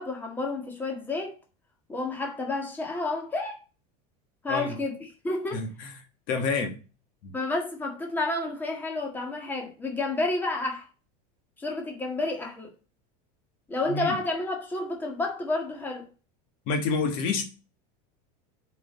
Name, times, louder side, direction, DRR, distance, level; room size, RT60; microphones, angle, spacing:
voice 1, 0.0-1.3 1.9-3.6 4.4-4.9 5.2-5.6 7.3-10.9 11.6-12.7 13.7-16.1, left 2 dB, 10° left, 1.7 m, -30 dB
voice 2, 5.5-5.9 6.3-6.8 7.2-7.3 13.9-14.2 16.7-17.4, left 4 dB, 45° left, 1.5 m, -28 dB
7.4 x 5.1 x 5.2 m
supercardioid pair, 175°, 20 cm